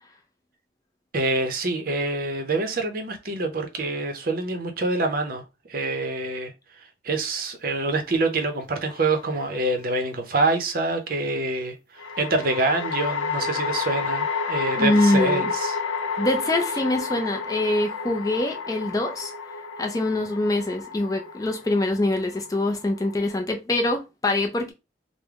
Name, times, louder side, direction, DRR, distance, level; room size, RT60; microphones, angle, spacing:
voice 1, 1.1-5.4 5.7-6.5 7.0-15.8, right 2 dB, 50° right, 0.6 m, -26 dB
sound 1, 8.9-9.6 12.0-23.3, left 5 dB, 90° left, 0.6 m, -30 dB
voice 2, 14.8-15.5 16.2-19.3 19.8-24.7, left 2 dB, 20° left, 0.4 m, -24 dB
3.3 x 2.0 x 3.5 m
head